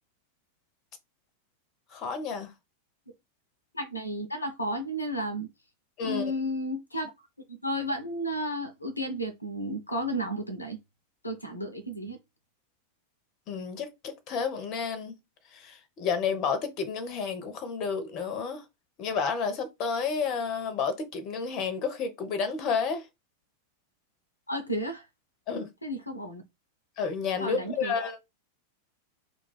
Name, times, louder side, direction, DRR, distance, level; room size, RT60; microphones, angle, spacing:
voice 1, 1.9-2.5 6.0-6.3 13.5-15.1 15.5-18.6 19.0-23.1 25.5-25.7 27.0-28.2, left 5 dB, 35° left, 0.6 m, -31 dB
voice 2, 3.7-5.5 6.0-7.1 7.5-10.8 11.2-12.2 24.5-25.0 25.8-26.4 27.4-27.9, equal, 85° left, 0.5 m, -32 dB
2.3 x 2.3 x 3.9 m
figure-of-eight pair, 90°, 0 cm